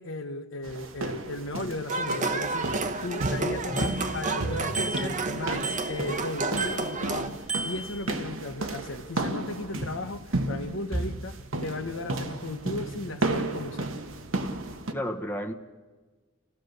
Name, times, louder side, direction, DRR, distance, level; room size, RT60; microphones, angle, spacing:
voice 1, 0.0-13.9, left 2 dB, 70° left, 1.0 m, -36 dB
sound 1, 0.6-14.9, right 2 dB, 80° right, 1.4 m, -33 dB
sound 2, 1.9-7.3, right 3 dB, 40° right, 1.1 m, -31 dB
Bicycle bell, 3.8-4.4 4.7-5.2 5.6-6.2 6.6-7.1 7.5-8.2, right 3 dB, 5° right, 1.4 m, -35 dB
voice 2, 14.9-15.5, equal, 10° left, 1.1 m, -32 dB
29.0 x 15.5 x 6.6 m
head